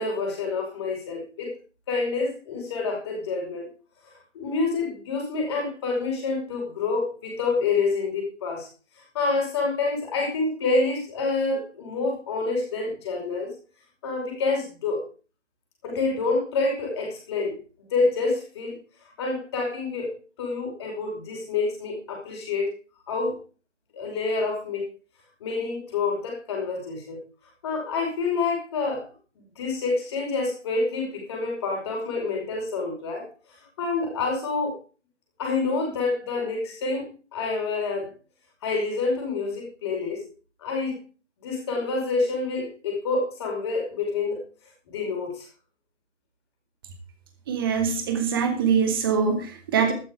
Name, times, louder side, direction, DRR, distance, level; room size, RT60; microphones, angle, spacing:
voice 1, 0.0-1.5 1.9-3.7 4.0-8.7 9.1-13.5 14.0-15.0 15.8-17.6 17.9-18.8 19.2-22.7 23.1-23.4 23.9-24.9 25.4-27.2 27.6-29.0 29.6-33.3 33.8-34.8 35.4-38.1 38.6-40.2 40.6-41.0 41.4-44.4 44.9-45.5, left 3 dB, 20° left, 0 dB, 5.2 m, -27 dB
voice 2, 47.5-49.9, right 6 dB, 20° right, 6 dB, 2.1 m, -23 dB
12.5 x 12.0 x 4.8 m, 0.36 s
figure-of-eight pair, 155°, 36 cm